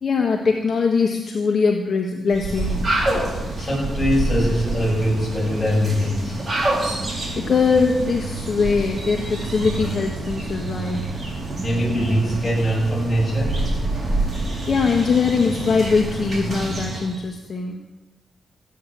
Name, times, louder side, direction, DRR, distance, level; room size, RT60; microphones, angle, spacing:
voice 1, 0.0-2.8 7.3-11.0 14.7-17.8, left 5 dB, 45° left, 1 dB, 1.5 m, -21 dB
sound 1, 2.3-17.2, right 2 dB, 35° right, 4.2 m, -27 dB
voice 2, 3.6-6.4 11.6-13.6, equal, 15° left, -4 dB, 7.3 m, -22 dB
16.0 x 9.6 x 7.7 m, 1.0 s
cardioid pair, 115°, 0 cm